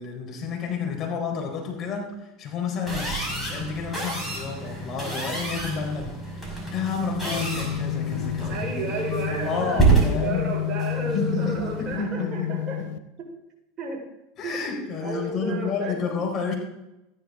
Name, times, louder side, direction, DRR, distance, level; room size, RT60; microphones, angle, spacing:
voice 1, 0.0-6.4 6.7-8.8 9.3-10.5 11.0-12.9 14.4-16.5, left 5 dB, 35° left, -1 dB, 4.2 m, -30 dB
sound 1, 2.9-12.0, right 3 dB, 5° right, 5.6 m, -28 dB
sound 2, 7.0-13.0, left 13 dB, 65° left, 0.7 m, -31 dB
voice 2, 8.5-12.8 13.8-14.0 14.4-14.6 15.0-15.9, right 3 dB, 30° right, -1 dB, 4.6 m, -32 dB
14.5 x 11.0 x 3.8 m, 0.91 s
hypercardioid pair, 85°, 0 cm